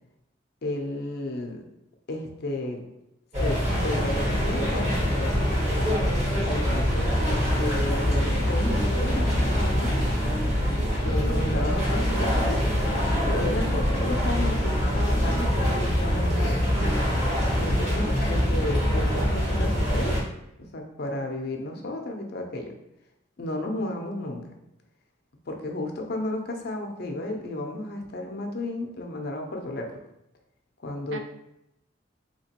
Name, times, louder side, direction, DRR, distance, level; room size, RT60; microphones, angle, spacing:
voice 1, 0.6-1.6 2.1-2.8 3.4-5.5 6.5-9.9 11.0-12.6 13.2-16.6 17.6-20.2 20.6-22.7 23.4-24.4 25.5-29.9 30.8-31.2, left 1 dB, 50° left, 3 dB, 0.6 m, -33 dB
sound 1, 3.3-20.2, equal, 35° right, 1.3 m, -24 dB
voice 2, 11.2-11.6 11.9-12.4 31.1-31.2, right 3 dB, 75° right, 5 dB, 0.5 m, -37 dB
3.8 x 2.8 x 2.8 m, 0.84 s
head